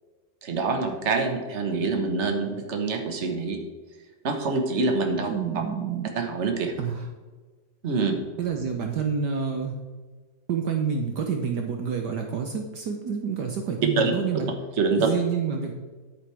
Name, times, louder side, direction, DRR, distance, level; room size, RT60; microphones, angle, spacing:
voice 1, 0.4-3.6 4.2-5.3 6.1-6.7 7.8-8.2 14.0-14.1 14.8-15.1, right 4 dB, 40° right, 4 dB, 1.5 m, -25 dB
voice 2, 5.2-6.1 6.8-7.1 8.4-9.8 10.5-14.5 14.9-15.7, right 6 dB, 65° right, 3 dB, 1.4 m, -28 dB
10.5 x 9.1 x 3.5 m, 1.4 s
omnidirectional pair, 2.1 m